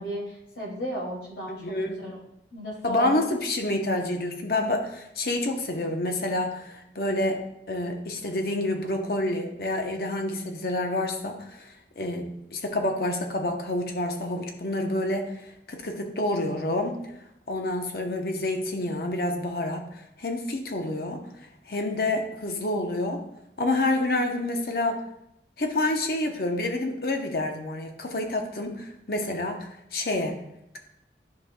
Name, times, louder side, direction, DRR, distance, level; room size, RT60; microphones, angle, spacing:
voice 1, 0.0-2.1 2.5-3.2, equal, 85° left, -5 dB, 2.4 m, -35 dB
voice 2, 1.6-2.0 2.8-7.4 7.7-15.3 15.7-17.0 17.5-19.8 20.2-21.2 21.7-23.2 23.6-25.0 25.6-30.4, left 1 dB, 55° left, 3 dB, 0.8 m, -28 dB
11.0 x 5.2 x 2.2 m, 0.81 s
head